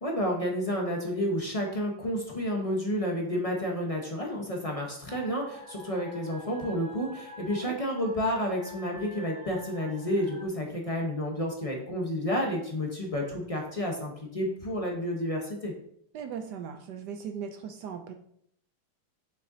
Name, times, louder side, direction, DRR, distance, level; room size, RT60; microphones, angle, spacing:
voice 1, 0.0-15.7, equal, 35° left, -1 dB, 0.5 m, -30 dB
sound 1, 5.1-10.5, equal, 60° right, 2.4 m, -47 dB
voice 2, 16.1-18.1, right 7 dB, 75° right, 6 dB, 0.9 m, -38 dB
6.6 x 6.5 x 2.7 m, 0.68 s
omnidirectional pair, 2.3 m